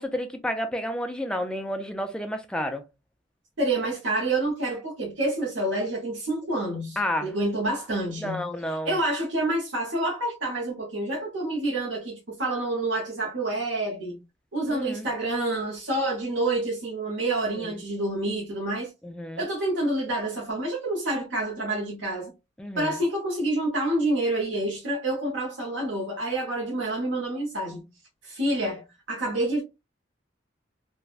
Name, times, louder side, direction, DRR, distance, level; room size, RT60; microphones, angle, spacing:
voice 1, 0.0-2.8 7.0-7.3 8.2-8.9 14.7-15.1 17.6-17.7 19.0-19.4 22.6-22.9, left 1 dB, 5° left, 0.3 m, -30 dB
voice 2, 3.6-8.5 8.8-14.2 14.5-18.9 19.4-22.3 22.8-27.9 28.2-29.6, right 2 dB, 80° right, 0.9 m, -28 dB
3.3 x 2.2 x 2.3 m
head